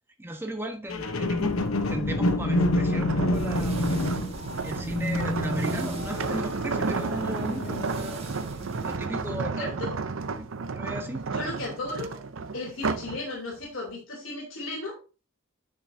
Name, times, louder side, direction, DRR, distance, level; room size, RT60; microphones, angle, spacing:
voice 1, 0.2-1.6 1.9-3.9 4.6-8.2 8.8-10.0 10.4-11.3, right 1 dB, 10° right, 3 dB, 1.1 m, -36 dB
sound 1, 0.9-8.3 8.9-9.0, left 2 dB, 80° left, 1.0 m, -28 dB
sound 2, 3.0-13.2 13.6-13.9, right 4 dB, 70° right, 0.6 m, -32 dB
sound 3, 3.3-9.0, right 2 dB, 30° right, 1.3 m, -44 dB
voice 2, 9.6-10.0 11.3-12.2 12.5-15.0, left 2 dB, 65° left, -2 dB, 3.2 m, -35 dB
9.6 x 6.0 x 2.7 m, 0.33 s
head